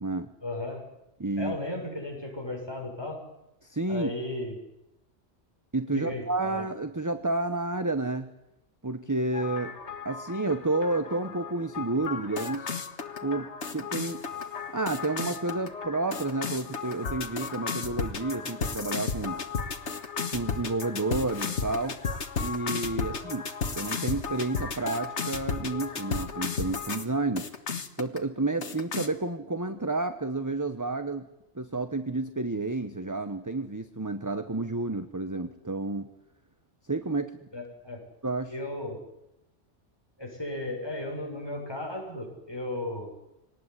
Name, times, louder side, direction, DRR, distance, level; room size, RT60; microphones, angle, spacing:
voice 1, 0.4-0.8 1.4-3.2 3.9-4.6 5.9-6.6 23.1-23.2 37.5-38.0 38.5-39.0 40.2-43.1, left 1 dB, 20° left, 0 dB, 7.1 m, -35 dB
voice 2, 1.2-1.6 3.6-4.1 5.7-8.3 8.8-9.7 10.0-12.7 13.2-14.2 14.7-19.4 20.3-22.0 22.4-23.4 23.7-27.5 28.0-31.3 31.5-36.1 36.9-37.3 38.2-38.5, right 2 dB, 15° right, 9 dB, 1.1 m, -30 dB
sound 1, 9.3-27.0 27.4-28.2 28.6-29.1, left 5 dB, 75° left, 1.9 m, -34 dB
24.5 x 19.0 x 9.9 m, 0.89 s
omnidirectional pair, 1.2 m